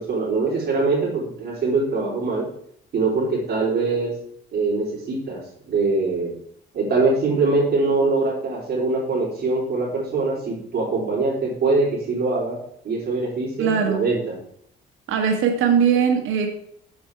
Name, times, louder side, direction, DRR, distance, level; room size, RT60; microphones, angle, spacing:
voice 1, 0.0-2.5 2.9-4.1 4.5-5.4 5.7-6.3 6.7-12.6 12.8-14.4, right 3 dB, 55° right, -6 dB, 3.8 m, -23 dB
voice 2, 13.6-14.0 15.1-16.5, right 7 dB, 85° right, 4 dB, 1.7 m, -20 dB
7.3 x 7.3 x 4.8 m, 0.68 s
cardioid pair, 90°, 20 cm